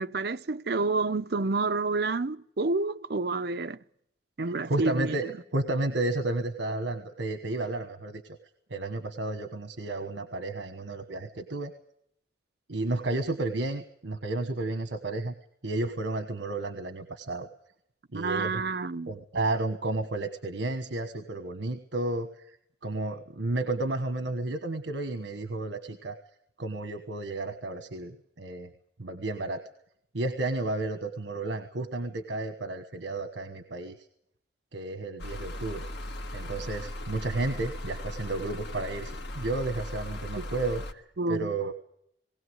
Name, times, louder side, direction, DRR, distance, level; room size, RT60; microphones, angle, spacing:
voice 1, 0.0-3.8 4.4-5.2 18.1-19.1 40.4-40.5 41.2-41.5, right 3 dB, 60° right, 0.7 m, -29 dB
voice 2, 4.7-8.2 8.7-11.7 12.7-15.3 15.6-17.5 18.1-18.5 19.1-22.3 22.8-26.2 26.6-28.7 29.0-29.6 30.1-33.9 34.7-35.8 36.3-41.7, right 2 dB, 80° right, 1.3 m, -32 dB
sound 1, 35.2-40.9, left 1 dB, 70° left, 1.8 m, -38 dB
20.0 x 17.5 x 8.0 m
head